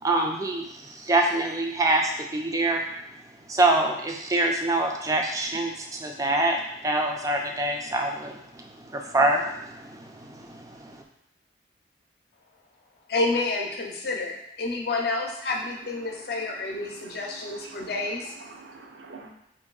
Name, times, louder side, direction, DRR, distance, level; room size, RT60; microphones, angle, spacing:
voice 1, 0.0-2.8 3.5-11.0, right 2 dB, 20° right, 3 dB, 0.3 m, -25 dB
voice 2, 13.1-18.3, left 3 dB, 60° left, 1 dB, 0.6 m, -29 dB
voice 3, 16.8-18.1 18.5-19.3, right 4 dB, 75° right, 1 dB, 0.5 m, -46 dB
3.0 x 2.6 x 3.8 m, 0.82 s
head